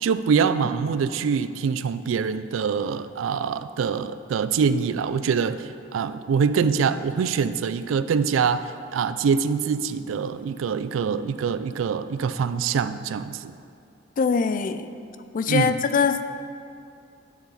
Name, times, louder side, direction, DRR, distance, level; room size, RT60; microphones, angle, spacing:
voice 1, 0.0-13.5 15.5-15.8, right 6 dB, 85° right, 13 dB, 0.3 m, -24 dB
voice 2, 14.2-14.9 15.3-16.2, left 5 dB, 45° left, 11 dB, 0.3 m, -22 dB
8.0 x 7.0 x 4.0 m, 2.4 s
head